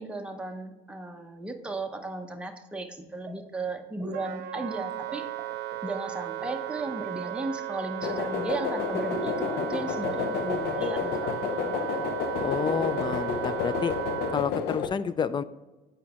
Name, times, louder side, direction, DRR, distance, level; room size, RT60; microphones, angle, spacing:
voice 1, 0.0-5.2 5.8-12.2, right 2 dB, 5° right, 3 dB, 0.7 m, -36 dB
sound 1, 3.3-3.7 4.0-4.2 4.5-5.8 6.4-7.5 9.1-9.4 10.4-10.8 11.1-11.3 11.6-11.7 12.0-12.2 12.8-13.1, right 4 dB, 20° right, 1.4 m, -43 dB
Wind instrument woodwind instrument, 4.1-14.4, right 14 dB, 80° right, 0.5 m, -35 dB
sound 2, 8.0-14.9, left 6 dB, 75° left, 0.7 m, -31 dB
voice 2, 12.3-13.9 14.3-15.4, left 6 dB, 25° left, 15 dB, 0.3 m, -29 dB
8.2 x 5.1 x 2.9 m, 1.1 s
cardioid pair, 110°, 17 cm